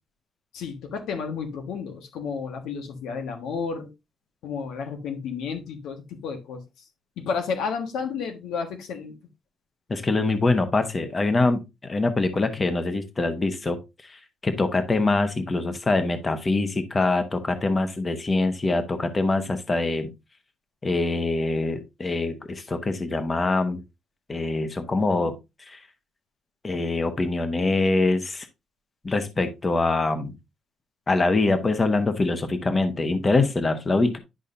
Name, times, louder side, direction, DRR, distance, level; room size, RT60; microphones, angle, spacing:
voice 1, 0.5-3.9 4.4-6.6 7.2-9.1, left 5 dB, 85° left, 1.4 m, -31 dB
voice 2, 9.9-13.8 14.1-20.1 20.8-23.8 24.3-25.4 25.7-25.8 26.6-28.5 29.0-30.3 31.1-34.2, left 3 dB, 20° left, 0.9 m, -24 dB
10.5 x 5.5 x 2.6 m
cardioid pair, 160°, 0 cm